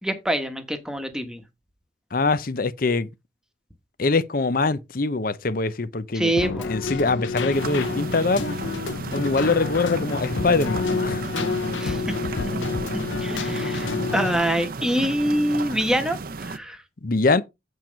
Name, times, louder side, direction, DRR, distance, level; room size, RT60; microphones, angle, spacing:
voice 1, 0.0-1.4 6.1-6.7 11.8-12.1 12.5-12.6 12.9-16.8, right 1 dB, 5° right, 1.3 m, -25 dB
voice 2, 2.1-3.1 4.0-6.3 6.7-8.6 9.1-11.2 17.0-17.4, left 3 dB, 50° left, 0.7 m, -23 dB
Keyboard (musical), 6.4-14.4, left 4 dB, 90° left, 0.6 m, -29 dB
sound 1, 7.5-16.6, right 3 dB, 50° right, 0.6 m, -33 dB
8.2 x 4.5 x 5.2 m
head